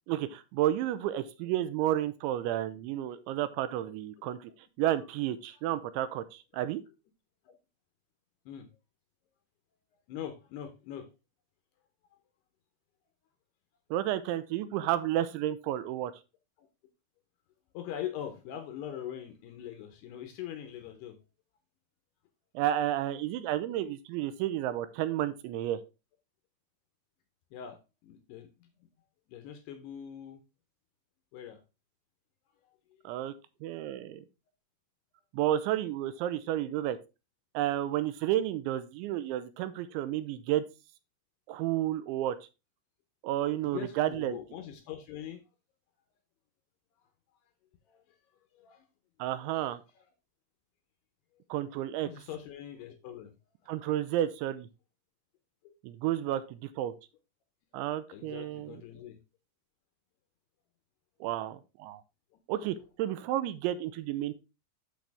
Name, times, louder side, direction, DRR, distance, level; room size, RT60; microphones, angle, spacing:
voice 1, 0.1-4.5 4.8-6.8 13.9-16.1 22.6-25.8 33.0-33.3 33.6-34.2 35.3-37.0 37.5-40.6 41.5-42.4 43.2-44.4 49.2-49.8 51.5-52.1 53.7-54.7 55.8-56.9 57.7-58.8 61.2-62.0 62.5-64.4, right 12 dB, 80° right, 2.9 m, -31 dB
voice 2, 10.1-11.1 16.6-16.7 17.7-21.2 27.5-28.7 29.3-30.4 31.3-31.6 33.0-33.1 43.6-45.4 47.9-48.0 48.5-48.9 52.0-53.3 58.1-59.2, left 10 dB, 75° left, 2.6 m, -42 dB
8.5 x 6.3 x 3.4 m
omnidirectional pair, 5.5 m